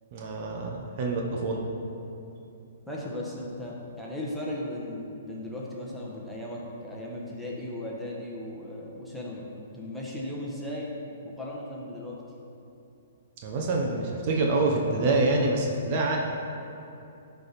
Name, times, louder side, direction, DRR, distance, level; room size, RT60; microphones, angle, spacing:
voice 1, 0.1-1.6 13.4-16.2, right 2 dB, 45° right, 0 dB, 0.9 m, -26 dB
voice 2, 2.9-10.9 11.2-12.2, left 1 dB, ahead, -5 dB, 1.2 m, -36 dB
10.5 x 3.5 x 4.1 m, 2.8 s
hypercardioid pair, 135°, 0 cm